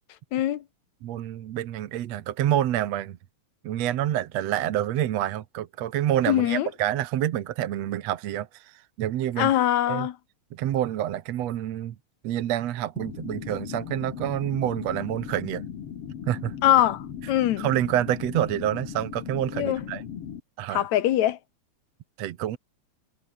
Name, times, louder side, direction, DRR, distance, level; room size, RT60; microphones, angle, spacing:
voice 1, 0.3-0.6 6.3-6.7 9.4-10.2 16.6-17.7 19.5-19.8 20.7-21.4, left 12 dB, 75° left, 2.4 m, -23 dB
voice 2, 1.0-3.2 3.6-9.5 9.9-10.1 10.5-12.0 12.2-15.6 16.3-16.5 17.6-20.0 20.6-20.9 22.2-22.6, right 12 dB, 65° right, 2.2 m, -27 dB
sound 1, 13.0-20.4, left 8 dB, 55° left, 2.6 m, -38 dB
omnidirectional pair, 3.4 m